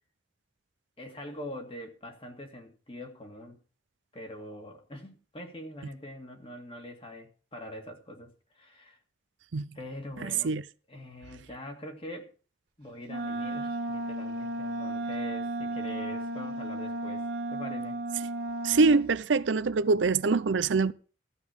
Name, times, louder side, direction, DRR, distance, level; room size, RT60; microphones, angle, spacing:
voice 1, 1.0-3.6 4.1-9.0 9.7-10.5 10.9-12.3 12.8-18.0, left 1 dB, 30° left, 2.2 m, -43 dB
voice 2, 10.2-10.6 18.6-20.9, right 4 dB, 80° right, 0.6 m, -24 dB
Wind instrument woodwind instrument, 13.1-19.1, right 1 dB, 55° right, 2.1 m, -34 dB
14.0 x 5.3 x 8.1 m
head